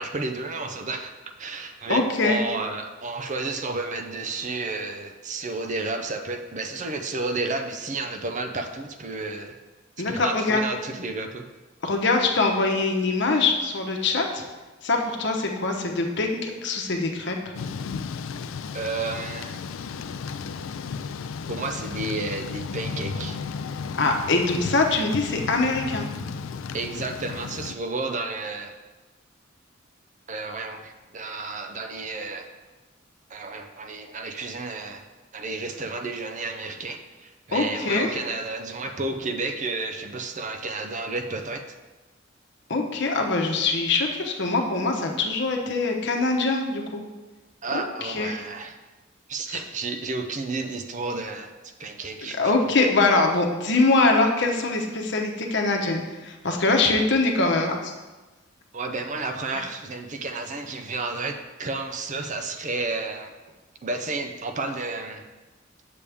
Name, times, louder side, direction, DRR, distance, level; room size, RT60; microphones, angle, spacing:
voice 1, 0.0-9.6 10.0-11.4 18.7-19.6 21.5-23.4 26.7-28.8 30.3-32.5 33.3-35.0 35.3-41.6 47.6-48.8 49.3-51.5 51.8-52.7 58.7-63.3 63.8-65.3, right 3 dB, 40° right, 6 dB, 0.6 m, -32 dB
voice 2, 1.9-2.4 10.0-10.6 11.8-14.4 14.8-17.5 24.0-26.1 37.5-38.1 42.7-47.0 47.7-48.4 49.5-49.6 52.3-57.9 59.5-59.6, left 3 dB, 60° left, 2 dB, 1.0 m, -23 dB
Thunder / Rain, 17.5-27.7, left 5 dB, 80° left, 0.4 m, -34 dB
8.3 x 6.9 x 3.5 m, 1.2 s
head